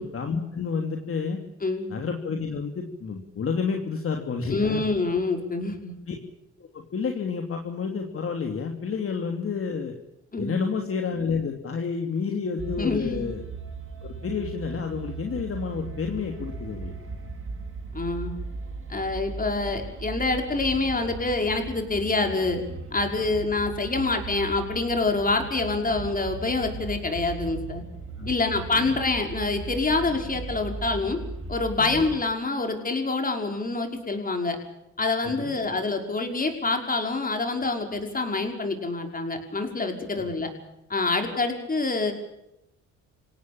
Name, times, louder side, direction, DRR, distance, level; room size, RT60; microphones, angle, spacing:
voice 1, 0.0-1.4 1.9-4.9 6.1-6.2 6.6-9.9 10.4-13.4 14.0-16.9 28.2-28.3 28.7-28.9 31.8-32.0 35.2-35.5 40.1-40.3, left 5 dB, 45° left, 3 dB, 3.0 m, -30 dB
voice 2, 1.6-2.0 4.5-5.9 10.3-10.6 12.8-13.3 17.9-18.3 18.9-22.6 22.9-27.8 28.3-31.2 31.5-34.6 35.0-40.5 40.9-42.1, left 3 dB, 30° left, 4 dB, 5.7 m, -26 dB
sound 1, 12.6-32.2, right 4 dB, 45° right, 6.9 m, -37 dB
27.5 x 18.0 x 7.1 m, 0.85 s
cardioid pair, 90°, 30 cm